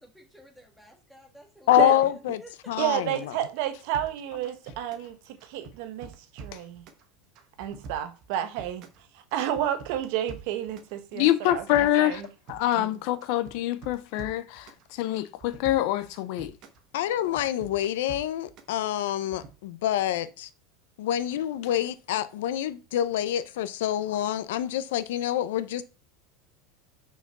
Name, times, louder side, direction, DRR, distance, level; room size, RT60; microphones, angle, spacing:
voice 1, 0.0-1.9 2.4-2.5 2.8-2.9 4.3-4.5, right 1 dB, ahead, 1.7 m, -52 dB
voice 2, 1.7-2.4 2.7-3.3 16.9-20.5 21.0-25.8, left 12 dB, 90° left, 0.8 m, -26 dB
voice 3, 2.8-6.8 7.6-8.9 9.3-12.2 12.7-12.9, right 11 dB, 55° right, 1.2 m, -31 dB
sound 1, 3.9-5.1 5.4-7.0 7.3-9.0 9.3-10.9 11.2-12.9 13.2-14.8 15.2-16.8 17.1-18.7 19.1-19.5, right 5 dB, 35° right, 1.4 m, -45 dB
voice 4, 11.1-12.2 12.5-16.5, left 14 dB, 50° left, 0.7 m, -26 dB
6.1 x 5.0 x 6.7 m
supercardioid pair, 170°, 0 cm